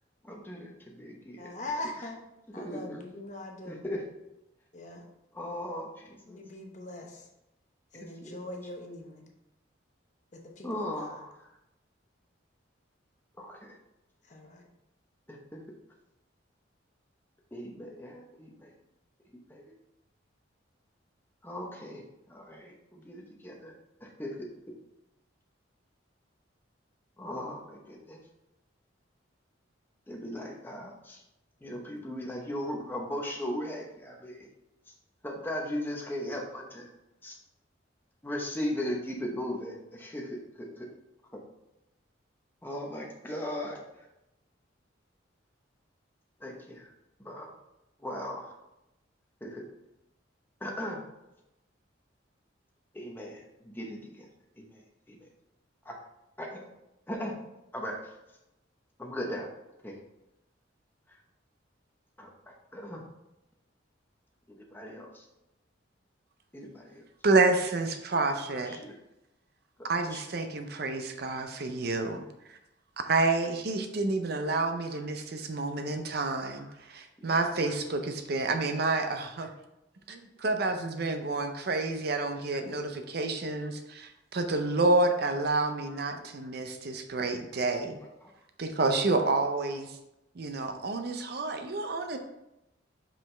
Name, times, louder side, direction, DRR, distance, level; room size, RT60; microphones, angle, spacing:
voice 1, 0.2-1.5 2.6-3.0 3.6-4.0 5.3-6.4 8.0-8.3 10.6-11.5 13.4-13.8 15.3-15.6 17.5-18.7 19.5-19.6 21.4-23.7 24.0-24.5 27.2-28.2 30.1-31.2 31.6-34.5 34.9-35.0 35.2-36.9 37.2-37.4 38.2-40.9 41.3-41.4 42.6-44.1 46.4-46.9 47.2-47.5 48.0-48.5 49.4-49.7 50.6-51.1 52.9-54.3 54.6-55.3 55.8-56.0 56.4-56.7 57.1-57.4 57.7-58.2 59.0-59.5 59.8-60.0 61.1-61.2 62.2-63.1 64.5-65.3 66.5-67.0 68.5-69.0 69.8-70.2 74.9-75.0 76.6-76.7 77.2-77.4 77.6-77.7 82.5-82.8 85.9-86.0 88.2-88.3, left 1 dB, 10° left, -1 dB, 0.9 m, -38 dB
voice 2, 1.4-2.2 2.5-3.8 4.7-5.1 6.3-7.3 7.9-9.3 10.3-11.2 14.2-14.7, left 1 dB, 40° left, 1 dB, 0.9 m, -41 dB
voice 3, 67.2-68.8 69.8-72.6 73.0-79.5 80.1-88.0 88.6-90.0 90.4-92.2, right 3 dB, 55° right, 7 dB, 0.5 m, -29 dB
5.5 x 5.2 x 3.3 m, 0.90 s
head